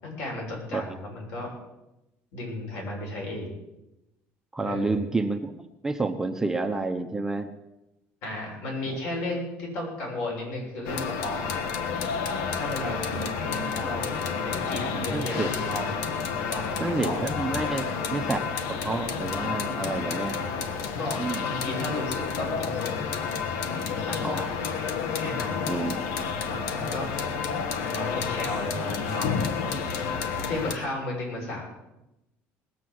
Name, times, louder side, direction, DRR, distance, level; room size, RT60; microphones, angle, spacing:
voice 1, 0.0-1.5 2.3-3.6 4.6-5.1 8.2-11.4 12.5-15.9 16.5-17.2 17.6-17.9 21.0-23.1 23.6-24.5 25.2-25.7 26.4-27.1 27.9-29.7 30.5-31.6, left 1 dB, 65° left, -1 dB, 6.8 m, -34 dB
voice 2, 4.5-7.5 8.9-9.0 14.8-15.5 16.8-17.8 18.1-18.4 18.7-20.3 21.2-21.4 24.2-24.4 25.7-26.0, right 3 dB, 10° right, 5 dB, 0.7 m, -29 dB
sound 1, 10.8-30.7, left 6 dB, 85° left, 1.3 m, -30 dB
19.5 x 7.4 x 7.8 m, 0.94 s
cardioid pair, 160°, 5 cm